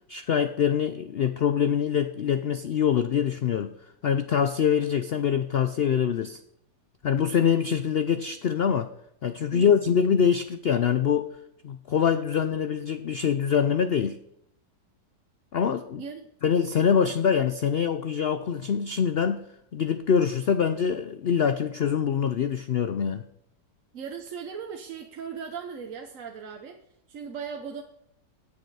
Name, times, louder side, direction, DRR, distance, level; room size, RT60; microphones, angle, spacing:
voice 1, 0.1-3.7 4.0-6.4 7.0-8.9 9.2-11.3 11.6-14.2 15.5-16.0 16.4-19.5 19.7-23.3, left 7 dB, 80° left, 11 dB, 0.5 m, -24 dB
voice 2, 16.0-16.3 23.9-26.8 27.1-27.8, right 6 dB, 55° right, 4 dB, 1.2 m, -38 dB
18.0 x 6.9 x 4.8 m, 0.75 s
omnidirectional pair, 1.8 m